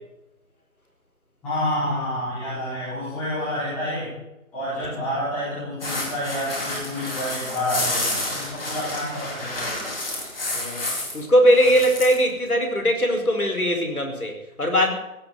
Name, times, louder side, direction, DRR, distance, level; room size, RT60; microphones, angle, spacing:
voice 1, 1.4-4.1 4.5-9.7, left 1 dB, 5° left, -13 dB, 4.4 m, -28 dB
sound 1, 5.8-11.2 11.5-12.2, left 2 dB, 40° left, 4.6 m, -30 dB
voice 2, 10.5-10.9 11.1-14.9, equal, 85° left, 4 dB, 5.0 m, -20 dB
16.5 x 8.2 x 9.6 m, 0.89 s
figure-of-eight pair, 170°, 43 cm